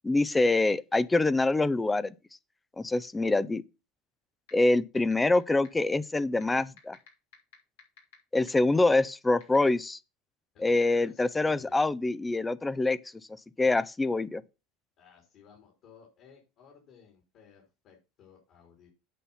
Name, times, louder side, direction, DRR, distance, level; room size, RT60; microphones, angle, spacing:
voice 1, 0.0-2.1 2.8-3.6 4.5-7.0 8.3-10.0 10.6-13.0 13.6-14.4, left 2 dB, 15° left, 0.6 m, -25 dB
sound 1, 4.5-4.6 5.0-5.4 5.6-5.7 6.4-8.1 8.5-8.6 9.4-9.6, left 8 dB, 80° left, 3.1 m, -50 dB
voice 2, 10.5-11.8 15.0-18.9, left 7 dB, 55° left, 3.7 m, -56 dB
8.4 x 5.6 x 5.6 m
hypercardioid pair, 90°, 0 cm